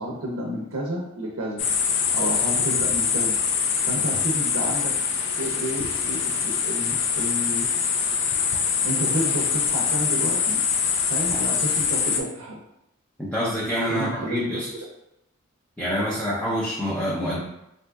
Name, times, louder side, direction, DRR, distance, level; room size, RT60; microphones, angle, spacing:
voice 1, 0.0-1.6 2.1-3.3 3.9-4.9 5.3-7.7 8.8-10.6 11.1-12.6 13.9-14.6, right 1 dB, 85° right, -3 dB, 0.6 m, -30 dB
sound 1, 1.6-12.2, left 6 dB, 65° left, 0.4 m, -24 dB
voice 2, 13.2-14.7 15.8-17.4, equal, 5° left, -8 dB, 0.5 m, -26 dB
3.5 x 2.7 x 2.3 m, 0.82 s
head